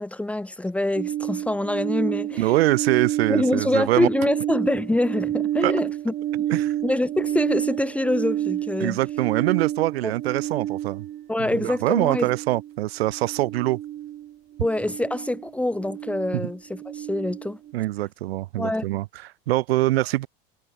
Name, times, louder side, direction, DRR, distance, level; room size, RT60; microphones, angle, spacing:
voice 1, 0.0-2.6 3.3-6.5 6.8-9.0 10.0-10.1 11.3-12.3 14.6-17.6 18.6-18.8, left 1 dB, 5° left, 1.9 m, -25 dB
sound 1, 0.9-17.7, right 12 dB, 30° right, 4.3 m, -30 dB
voice 2, 2.4-4.1 5.6-5.7 6.5-6.7 8.8-11.0 11.4-13.8 16.3-16.5 17.7-20.3, right 17 dB, 65° right, 5.1 m, -24 dB
supercardioid pair, 150°, 33 cm